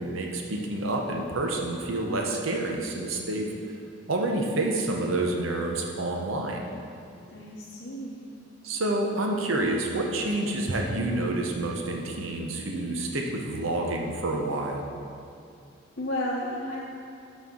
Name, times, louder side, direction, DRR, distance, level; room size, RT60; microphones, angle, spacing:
voice 1, 0.0-3.5 4.1-6.7 8.6-14.8, right 2 dB, 90° right, 1 dB, 0.8 m, -28 dB
voice 2, 7.3-8.3 16.0-16.9, left 1 dB, 55° left, -6 dB, 0.8 m, -32 dB
12.5 x 4.4 x 3.7 m, 2.4 s
head